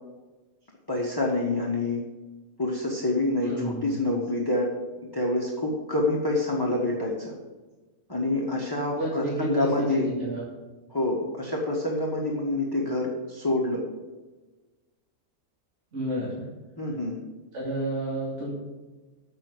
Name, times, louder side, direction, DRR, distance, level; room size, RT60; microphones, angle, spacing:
voice 1, 0.9-2.0 2.6-4.7 5.1-7.3 8.1-10.1 10.9-13.8 16.8-17.2, left 2 dB, 15° left, -3 dB, 1.3 m, -27 dB
voice 2, 3.4-3.9 8.9-10.4 15.9-16.4 17.5-18.5, right 1 dB, 50° right, -6 dB, 2.8 m, -30 dB
7.4 x 6.8 x 7.9 m, 1.2 s
omnidirectional pair, 1.6 m